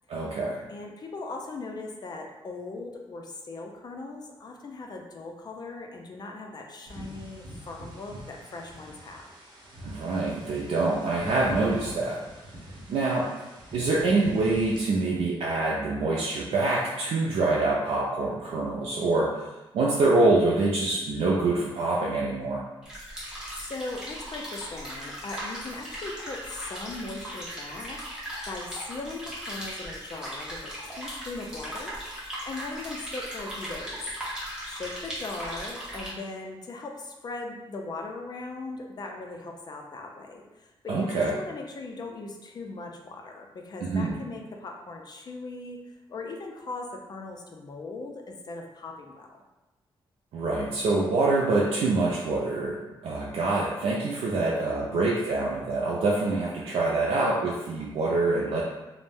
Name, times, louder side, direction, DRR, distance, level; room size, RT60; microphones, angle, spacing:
voice 1, 0.1-0.6 9.8-12.2 12.9-13.3 13.7-19.4 19.7-22.6 40.9-41.4 43.8-44.2 50.3-58.6, right 2 dB, 85° right, -4 dB, 0.4 m, -25 dB
voice 2, 0.7-9.3 23.2-32.0 32.5-34.0 34.6-49.4 54.4-55.0, left 3 dB, 45° left, 2 dB, 0.4 m, -39 dB
sound 1, 6.9-14.8, equal, 50° right, 0.8 m, -44 dB
sound 2, 22.8-36.1, equal, 5° right, 0.9 m, -38 dB
2.5 x 2.0 x 3.4 m, 1.1 s
wide cardioid pair, 110°, 9 cm